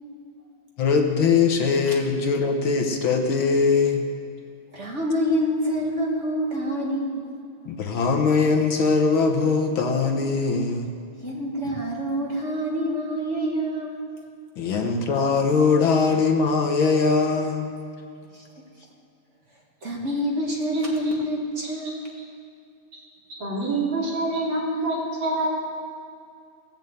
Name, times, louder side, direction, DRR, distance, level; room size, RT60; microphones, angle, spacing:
voice 1, 0.8-4.0 7.7-10.9 14.6-17.7, left 4 dB, 70° left, 3 dB, 1.9 m, -21 dB
voice 2, 4.7-7.2 11.2-14.0 14.8-15.0 16.1-16.3 18.3-18.4 19.8-22.1, equal, 35° right, -2 dB, 1.8 m, -27 dB
voice 3, 23.4-25.5, right 2 dB, 60° right, -6 dB, 3.9 m, -26 dB
17.0 x 7.3 x 8.0 m, 2.4 s
omnidirectional pair, 2.4 m